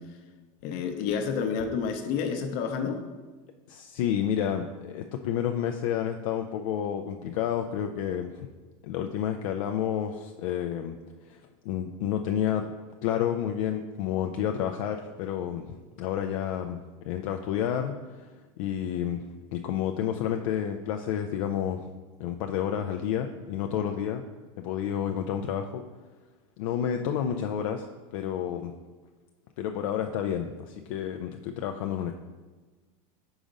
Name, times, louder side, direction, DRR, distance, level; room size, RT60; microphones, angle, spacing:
voice 1, 0.6-3.0, left 6 dB, 60° left, 6 dB, 0.8 m, -29 dB
voice 2, 3.7-8.5 8.8-11.0 11.2-12.7 13.0-16.8 17.1-21.9 22.2-24.2 24.6-25.8 26.6-27.9 28.1-28.7 29.6-32.1, left 9 dB, 75° left, 5 dB, 0.4 m, -30 dB
4.9 x 3.8 x 5.2 m, 1.3 s
supercardioid pair, 120°, 17 cm